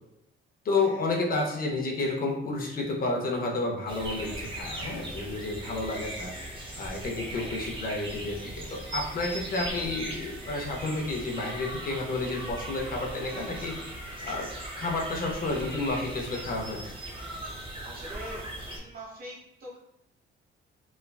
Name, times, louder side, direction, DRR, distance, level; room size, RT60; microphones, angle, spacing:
voice 1, 0.6-6.3 6.8-13.7 14.2-14.5 14.8-16.8, left 3 dB, 45° left, 0 dB, 0.5 m, -31 dB
sound 1, 3.9-18.8, right 1 dB, 25° right, 0.6 m, -39 dB
voice 2, 7.1-7.6 17.8-19.8, right 1 dB, 45° right, -3 dB, 0.9 m, -44 dB
3.1 x 2.2 x 2.2 m, 0.83 s
cardioid pair, 125°, 21 cm